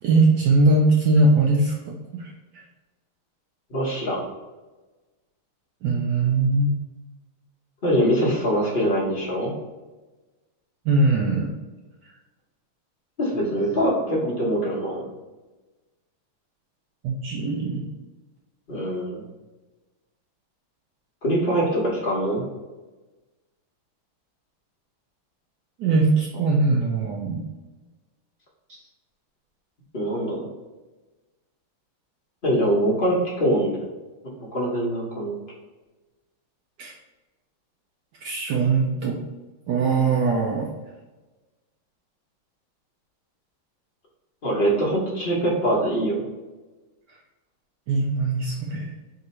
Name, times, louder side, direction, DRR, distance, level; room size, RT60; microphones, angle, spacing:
voice 1, 0.0-2.6 5.8-6.7 10.8-11.5 17.0-17.8 25.8-27.4 36.8-36.9 38.2-39.2 39.7-40.7 47.9-48.9, right 3 dB, 80° right, -2 dB, 0.9 m, -21 dB
voice 2, 3.7-4.2 7.8-9.5 13.2-15.0 18.7-19.2 21.2-22.4 29.9-30.5 32.4-33.8 34.5-35.4 44.4-46.2, equal, 45° left, -5 dB, 0.7 m, -23 dB
3.7 x 2.7 x 4.2 m, 1.2 s
omnidirectional pair, 2.4 m